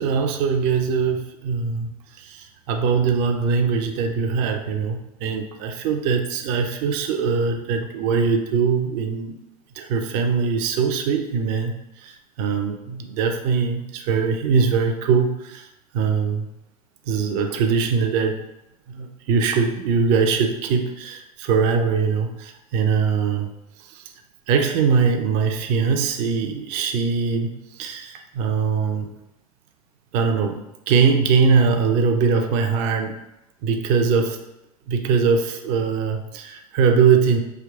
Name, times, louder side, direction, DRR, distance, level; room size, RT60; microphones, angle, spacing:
voice 1, 0.0-9.4 9.8-15.7 15.9-16.5 17.1-18.4 18.9-23.5 23.8-24.0 24.5-29.1 30.1-33.2 33.6-34.4 34.9-37.4, right 5 dB, 45° right, 5 dB, 0.5 m, -22 dB
3.4 x 2.9 x 3.5 m, 0.90 s
figure-of-eight pair, 80°, 19 cm